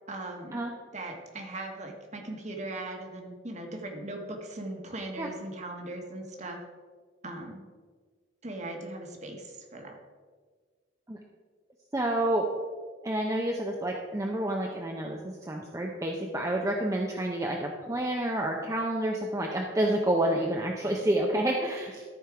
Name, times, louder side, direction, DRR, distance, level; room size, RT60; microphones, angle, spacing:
voice 1, 0.1-0.6 0.9-6.6 7.2-7.6 8.4-10.0, right 2 dB, 35° right, 2 dB, 1.4 m, -39 dB
voice 2, 11.9-12.5 13.0-22.0, right 1 dB, 15° right, 0 dB, 0.6 m, -29 dB
13.5 x 4.5 x 4.8 m, 1.5 s
head